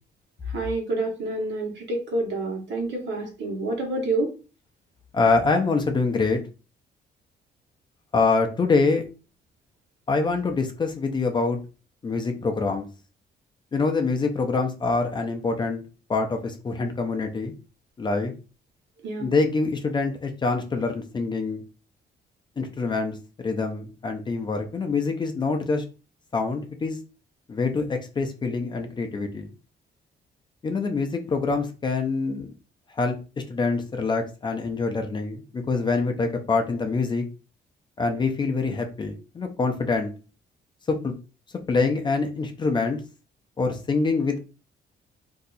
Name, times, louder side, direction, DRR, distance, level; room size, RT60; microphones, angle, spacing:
voice 1, 0.4-4.3 19.0-19.3, right 2 dB, 75° right, 0 dB, 1.2 m, -28 dB
voice 2, 5.1-6.4 8.1-9.0 10.1-11.6 12.0-12.9 13.7-15.8 16.1-17.5 18.0-18.3 19.2-21.6 22.6-25.8 26.3-27.0 27.5-29.5 30.6-32.5 32.9-33.2 33.5-37.2 38.0-40.1 40.9-41.1 41.7-43.0 43.6-44.4, left 4 dB, 25° left, 4 dB, 0.4 m, -25 dB
2.7 x 2.3 x 3.9 m, 0.33 s
cardioid pair, 150°, 18 cm